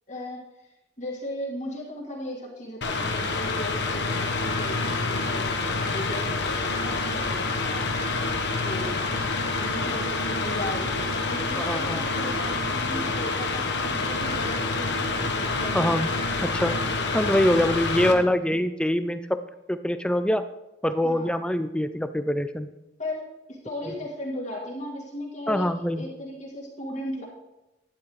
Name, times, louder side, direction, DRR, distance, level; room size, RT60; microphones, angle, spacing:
voice 1, 0.1-0.7 1.0-7.9 8.6-9.2 9.5-16.3 21.0-21.4 23.0-25.7 25.9-27.2, left 1 dB, 40° left, -4 dB, 2.0 m, -37 dB
Mechanical fan, 2.8-18.1, left 3 dB, 60° left, 1.1 m, -27 dB
voice 2, 11.6-12.0 15.7-16.1 16.4-16.8 17.1-19.4 19.7-20.4 20.8-22.7 23.9-24.0 25.5-26.0, left 1 dB, 5° left, 11 dB, 0.4 m, -24 dB
12.0 x 9.9 x 3.2 m, 0.95 s
head